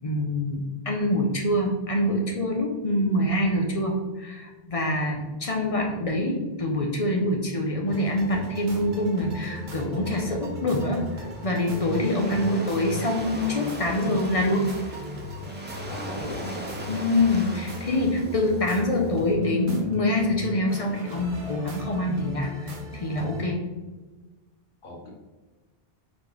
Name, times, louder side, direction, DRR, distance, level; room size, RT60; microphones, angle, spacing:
voice 1, 0.0-14.7 16.9-23.6, left 1 dB, 40° left, 1 dB, 0.6 m, -25 dB
sound 1, 7.9-23.4, equal, 55° right, 0.9 m, -38 dB
Waves surf, 11.0-19.2, equal, 20° right, 0.3 m, -39 dB
voice 2, 12.1-12.7 15.8-16.7 24.8-25.1, left 1 dB, 60° left, -1 dB, 1.0 m, -41 dB
4.2 x 3.3 x 3.0 m, 1.3 s
omnidirectional pair, 1.0 m